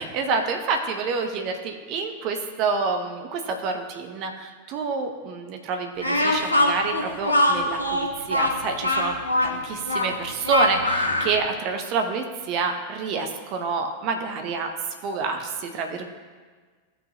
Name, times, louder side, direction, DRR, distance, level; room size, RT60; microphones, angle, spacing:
voice 1, 0.0-9.1 9.4-14.7 15.0-16.0, right 4 dB, 40° right, 4 dB, 1.0 m, -28 dB
Speech, 6.0-11.3, left 1 dB, 85° left, 1.1 m, -22 dB
14.0 x 6.0 x 2.9 m, 1.5 s
figure-of-eight pair, 90°, 0 cm